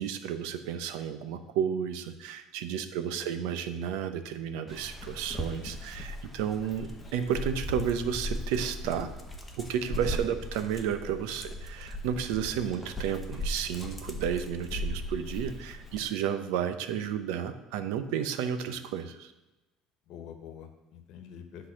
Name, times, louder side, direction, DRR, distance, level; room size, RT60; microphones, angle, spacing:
voice 1, 0.0-9.1 9.6-19.3, right 8 dB, 85° right, 9 dB, 0.8 m, -32 dB
voice 2, 2.8-3.3 10.2-10.3 18.7-18.8 20.1-21.7, left 8 dB, 55° left, 7 dB, 1.2 m, -47 dB
Dog, 4.7-16.0, left 1 dB, 5° left, 1.1 m, -38 dB
10.0 x 4.0 x 6.4 m, 1.0 s
cardioid pair, 160°, 0 cm